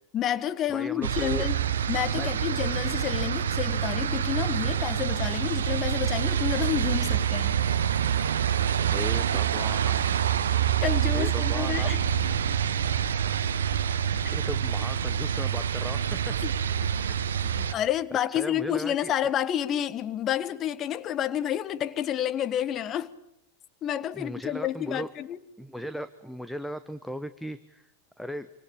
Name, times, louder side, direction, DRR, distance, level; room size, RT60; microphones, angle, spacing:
voice 1, 0.1-1.6 1.9-7.5 10.8-12.0 16.4-16.5 17.7-23.1 23.8-25.4, left 11 dB, 30° left, 1.3 m, -29 dB
voice 2, 0.7-1.5 2.1-2.3 8.9-10.0 11.1-11.9 14.3-16.3 17.0-17.2 17.5-17.7 18.3-19.1 24.1-25.1 25.6-27.9 28.2-28.5, equal, ahead, 1.1 m, -37 dB
sound 1, 1.0-17.7, right 9 dB, 65° right, 1.3 m, -26 dB
26.5 x 25.5 x 8.8 m
figure-of-eight pair, 90°, 0 cm